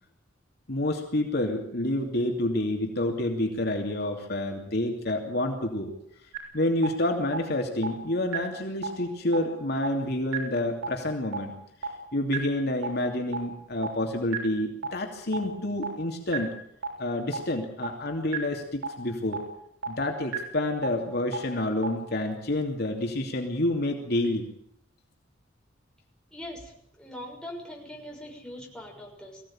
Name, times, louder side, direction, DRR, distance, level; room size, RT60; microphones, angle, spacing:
voice 1, 0.7-5.9 6.5-11.5 12.1-16.5 17.0-19.4 19.9-24.4, left 1 dB, 55° left, 3 dB, 2.9 m, -28 dB
sound 1, 6.3-6.4 6.8-6.9 7.3-7.4 7.8-7.9 8.3-8.4 8.8-8.9 9.3-9.4 9.8-9.9 10.3-10.4 10.8-10.9 11.3-11.4 11.8-11.9 12.3-12.4 12.8-12.9 13.3-13.4 13.8-13.9 14.3-14.4 14.8-14.9 15.3-15.4 15.8-15.9 16.3-16.4 16.8-16.9 17.3-17.4 17.8-17.9 18.3-18.4 18.8-18.9 19.3-19.4 19.8-19.9 20.3-20.4 20.8-20.9 21.3-21.4 21.8-21.9, right 6 dB, 85° right, 6.8 m, -29 dB
voice 2, 26.3-29.4, left 1 dB, 5° left, -1 dB, 6.3 m, -42 dB
22.5 x 16.5 x 8.9 m, 0.72 s
head